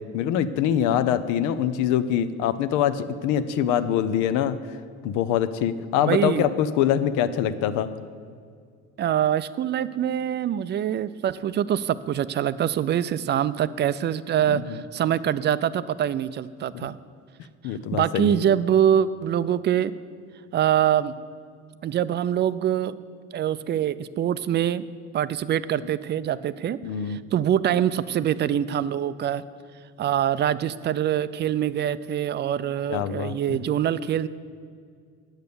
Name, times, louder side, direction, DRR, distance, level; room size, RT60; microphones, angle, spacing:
voice 1, 0.1-4.6 5.0-7.9 14.5-14.8 16.7-16.9 17.6-18.4 26.8-27.2 32.9-33.6, left 9 dB, 85° left, 12 dB, 0.7 m, -24 dB
voice 2, 6.0-6.5 9.0-17.0 17.6-19.9 20.5-21.1 21.8-23.0 23.3-24.9 25.1-26.8 27.1-29.4 30.0-34.3, right 10 dB, 35° right, 16 dB, 0.4 m, -24 dB
8.9 x 8.0 x 6.8 m, 2.1 s
cardioid pair, 110°, 30 cm